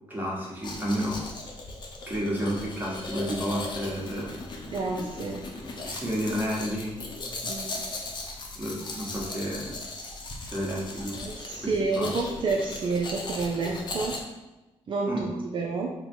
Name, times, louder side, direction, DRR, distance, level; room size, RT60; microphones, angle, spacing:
voice 1, 0.1-1.2 2.1-4.3 5.8-7.0 8.5-9.8 10.4-11.2 11.6-12.1 15.1-15.3, equal, 15° right, -4 dB, 1.3 m, -31 dB
Domestic sounds home sounds, 0.6-14.2, left 2 dB, 45° left, 0.7 m, -38 dB
voice 2, 4.7-5.4 7.4-7.8 11.2-14.2 14.9-15.9, right 3 dB, 50° right, -1 dB, 0.5 m, -29 dB
3.9 x 2.2 x 4.4 m, 1.1 s
cardioid pair, 90°, 11 cm